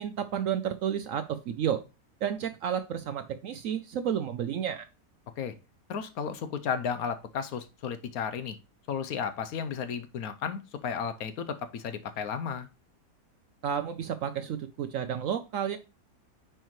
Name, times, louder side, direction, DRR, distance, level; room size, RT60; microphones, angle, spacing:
voice 1, 0.0-1.8 2.2-4.9 13.6-15.8, right 9 dB, 70° right, 10 dB, 0.8 m, -31 dB
voice 2, 5.9-8.6 8.9-12.7, left 7 dB, 70° left, 10 dB, 1.1 m, -33 dB
9.2 x 4.5 x 3.1 m, 0.29 s
omnidirectional pair, 1.8 m